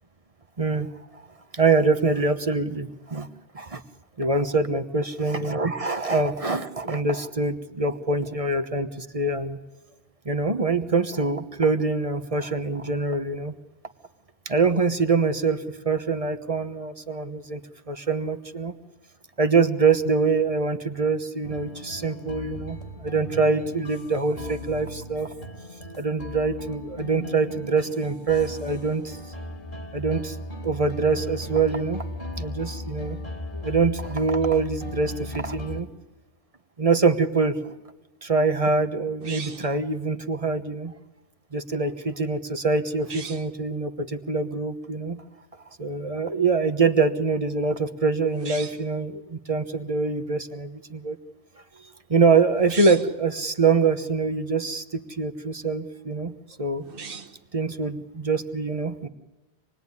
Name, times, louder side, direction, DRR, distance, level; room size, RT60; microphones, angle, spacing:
voice 1, 0.6-0.9 1.1-1.3 1.5-3.3 3.5-3.8 4.2-9.6 10.2-13.5 14.4-17.6 17.9-18.7 19.4-25.3 26.0-29.2 29.9-30.4 30.6-32.0 32.4-33.2 33.5-35.9 36.8-37.7 38.2-40.9 41.5-45.2 45.8-51.2 52.1-56.8 57.5-59.1, right 4 dB, 35° right, 8 dB, 1.2 m, -24 dB
sound 1, 21.4-35.8, left 1 dB, 50° left, 3.8 m, -37 dB
sound 2, 39.2-39.8 43.0-43.5 48.3-48.9 52.5-53.2 56.8-57.5, right 5 dB, 60° right, 1.3 m, -38 dB
27.0 x 20.0 x 9.7 m, 1.1 s
omnidirectional pair, 1.1 m